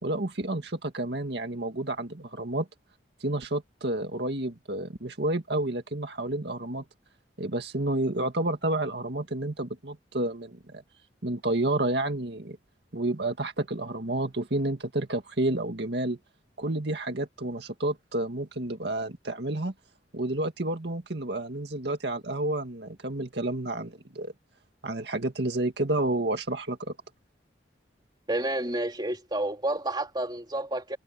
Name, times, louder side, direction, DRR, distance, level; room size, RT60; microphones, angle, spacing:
voice 1, 0.0-2.7 3.2-6.8 7.4-10.8 11.2-12.6 12.9-16.2 16.6-19.7 20.1-24.3 24.8-27.0, right 1 dB, 65° right, 2.1 m, -30 dB
voice 2, 28.3-31.0, right 1 dB, 25° right, 3.2 m, -30 dB
head